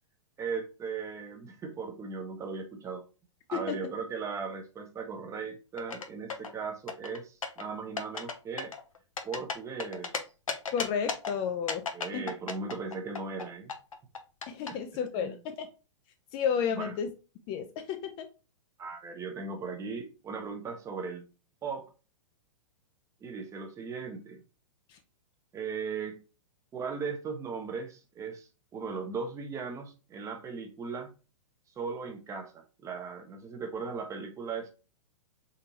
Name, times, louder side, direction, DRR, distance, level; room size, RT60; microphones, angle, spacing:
voice 1, 0.4-3.0 3.5-8.7 9.2-10.1 11.9-13.7 14.7-14.8 15.2-15.3 16.7-16.9 18.8-21.2 21.6-21.9 23.2-24.4 25.5-26.2 26.7-31.1 31.8-34.7, right 5 dB, 20° right, 0.6 m, -38 dB
sound 1, 5.8-6.5 6.9-7.6 8.0-8.3 8.6-10.2 10.5-11.3 11.7-13.4 13.7-14.7, left 5 dB, 90° left, 0.6 m, -34 dB
voice 2, 10.7-11.9 12.1-12.2 14.5-15.7 16.3-17.1 17.5-18.3 24.9-25.0, left 7 dB, 30° left, 0.4 m, -32 dB
3.8 x 2.7 x 2.7 m
hypercardioid pair, 115°, 17 cm